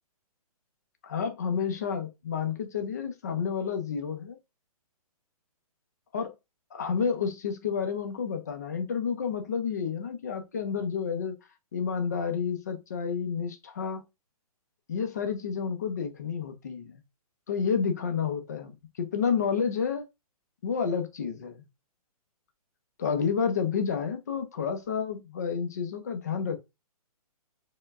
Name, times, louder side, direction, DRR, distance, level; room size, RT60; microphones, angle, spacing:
voice 1, 1.0-4.4 6.1-6.3 6.7-11.4 11.7-14.0 14.9-17.0 17.5-18.7 19.0-20.0 20.6-21.6 23.0-26.6, left 6 dB, 30° left, 0.5 m, -30 dB
4.6 x 2.2 x 3.5 m
hypercardioid pair, 175°, 19 cm